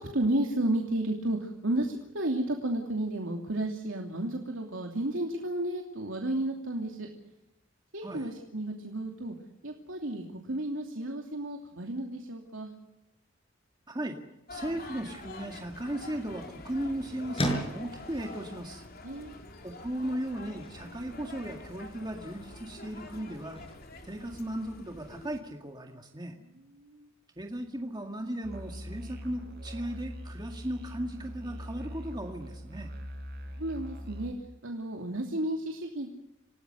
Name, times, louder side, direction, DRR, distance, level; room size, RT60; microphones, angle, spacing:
voice 1, 0.0-7.1 7.9-9.4 9.6-12.7 19.0-19.4 26.3-27.1 33.5-34.3 34.6-36.1, right 1 dB, 80° right, 2 dB, 2.9 m, -32 dB
voice 2, 13.9-14.2 14.5-18.8 19.6-23.6 24.0-26.4 27.4-32.9, right 1 dB, 20° right, 3 dB, 2.0 m, -36 dB
sound 1, 14.5-25.4, left 2 dB, 50° left, 3.9 m, -46 dB
sound 2, 15.3-25.1, equal, 30° left, 6.3 m, -42 dB
Musical instrument, 28.4-34.3, equal, 55° right, 5.2 m, -42 dB
28.5 x 18.5 x 6.6 m, 0.91 s
head